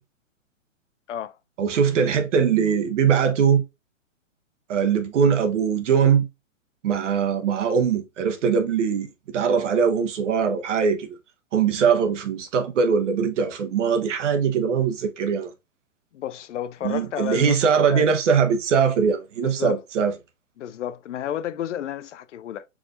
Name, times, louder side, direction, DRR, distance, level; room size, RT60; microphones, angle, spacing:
voice 1, 1.6-3.6 4.7-6.3 6.8-9.1 9.3-11.1 11.5-15.5 16.8-20.1, right 6 dB, 65° right, 1.1 m, -21 dB
voice 2, 16.1-18.1 19.4-19.8 20.6-22.7, left 11 dB, 65° left, 0.6 m, -31 dB
4.8 x 3.5 x 2.5 m
hypercardioid pair, 145°, 39 cm